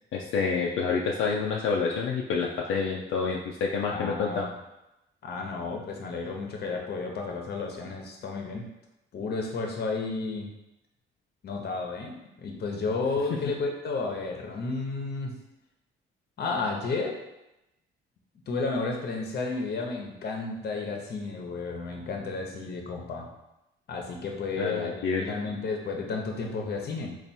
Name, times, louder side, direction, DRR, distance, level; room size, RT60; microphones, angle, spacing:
voice 1, 0.1-4.4 24.5-25.3, left 5 dB, 80° left, -2 dB, 0.5 m, -28 dB
voice 2, 3.9-4.5 5.2-8.6 9.1-10.5 11.4-15.4 16.4-17.2 18.5-23.3 23.9-27.2, left 3 dB, 55° left, 1 dB, 0.8 m, -32 dB
3.4 x 2.5 x 4.2 m, 0.94 s
cardioid pair, 90°, 20 cm